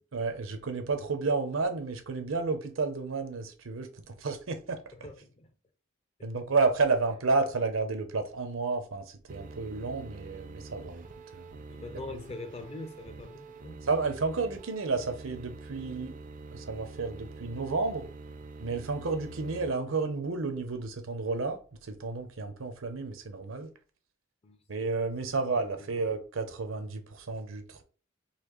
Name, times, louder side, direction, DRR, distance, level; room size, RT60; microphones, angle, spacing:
voice 1, 0.1-4.8 6.2-11.1 11.3-11.6 12.1-12.2 13.9-16.2 16.5-18.1 18.6-23.7 24.7-27.8, right 4 dB, 85° right, 0.7 m, -31 dB
voice 2, 4.9-5.5 6.2-6.3 11.7-13.8 19.8-20.0 24.4-24.6 25.8-25.9, left 2 dB, 30° left, 0.5 m, -43 dB
sound 1, 9.3-19.7, right 3 dB, 40° right, 0.4 m, -46 dB
4.1 x 2.7 x 3.0 m
head